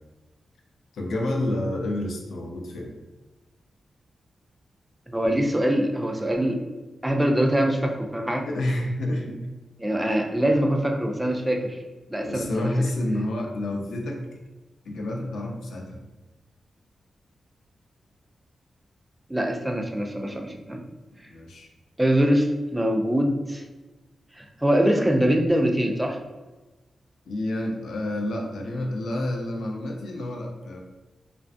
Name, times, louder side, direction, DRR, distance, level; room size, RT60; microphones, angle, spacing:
voice 1, 0.9-2.9 8.5-9.4 10.0-10.4 12.2-14.2 14.8-16.0 21.3-21.7 27.3-30.8, left 1 dB, 90° left, 1 dB, 0.5 m, -29 dB
voice 2, 5.1-6.7 7.0-8.5 9.8-11.8 12.1-12.7 19.3-20.8 22.0-23.6 24.4-26.2, equal, 10° right, 2 dB, 0.3 m, -23 dB
2.5 x 2.3 x 2.4 m, 1.1 s
wide cardioid pair, 125°, 0 cm